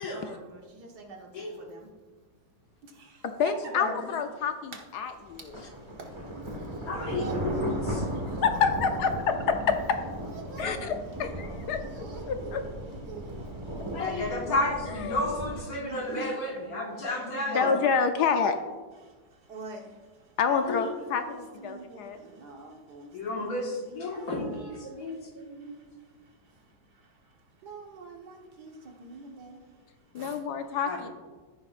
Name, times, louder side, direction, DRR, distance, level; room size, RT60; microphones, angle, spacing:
voice 1, 0.0-1.3 1.6-1.9 2.8-3.2 3.8-3.9 7.0-8.4 10.5-10.8 11.7-13.4 15.9-16.3 17.5-17.7 19.5-19.9 20.6-23.6 24.1-24.4 24.8-25.1 27.6-29.6 30.1-30.4, right 3 dB, 65° right, 1 dB, 1.8 m, -44 dB
voice 2, 3.2-5.6 8.2-10.0 10.6-12.6 14.9-15.2 17.5-18.6 20.4-22.2 24.4-24.5 30.1-31.1, left 6 dB, 70° left, 7 dB, 1.2 m, -28 dB
sound 1, 5.3-15.6, right 1 dB, 20° right, 1.2 m, -36 dB
voice 3, 6.8-8.0 13.9-17.7 20.5-20.8 23.1-25.8 30.9-31.1, left 2 dB, 55° left, -1 dB, 2.1 m, -32 dB
14.0 x 10.0 x 2.5 m, 1.4 s
omnidirectional pair, 1.9 m